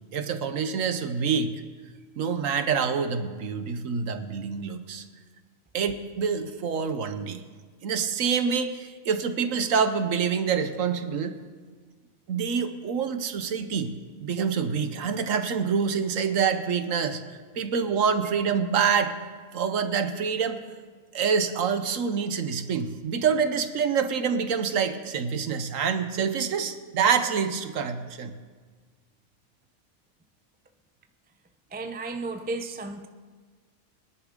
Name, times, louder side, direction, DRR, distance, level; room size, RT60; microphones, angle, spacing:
voice 1, 0.1-1.6 2.2-5.0 5.7-7.4 7.8-11.4 12.3-13.9 14.2-19.2 19.5-20.6 21.1-28.4, right 6 dB, 70° right, 1.2 m, -26 dB
voice 2, 31.7-33.1, right 3 dB, 15° right, 0.3 m, -33 dB
23.0 x 10.5 x 3.7 m
omnidirectional pair, 1.5 m